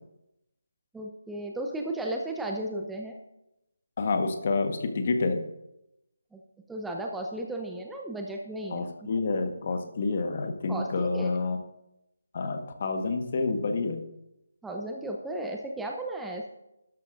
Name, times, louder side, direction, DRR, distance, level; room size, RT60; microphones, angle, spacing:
voice 1, 0.9-3.2 6.3-6.4 6.7-9.1 10.7-11.3 14.6-16.5, right 1 dB, 5° right, 1 dB, 0.7 m, -35 dB
voice 2, 4.0-5.5 8.7-11.6 12.3-14.1, left 3 dB, 40° left, 7 dB, 1.3 m, -28 dB
12.5 x 12.0 x 2.6 m, 0.88 s
figure-of-eight pair, 155°, 0 cm